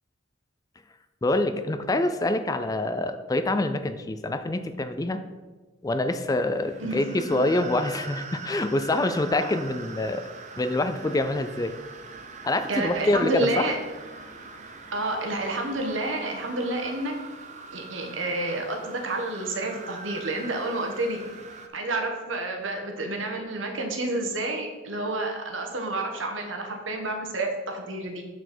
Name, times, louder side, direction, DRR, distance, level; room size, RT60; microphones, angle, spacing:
voice 1, 1.2-5.2 5.8-10.2 10.6-11.7 12.4-13.7, left 2 dB, 20° left, 10 dB, 0.4 m, -26 dB
sound 1, 6.3-21.7, right 4 dB, 40° right, 0.7 m, -42 dB
voice 2, 6.8-7.4 9.3-9.6 12.7-13.8 14.9-17.1 17.7-21.2 21.7-28.2, right 2 dB, 85° right, 3 dB, 1.3 m, -29 dB
6.8 x 6.2 x 4.4 m, 1.3 s
head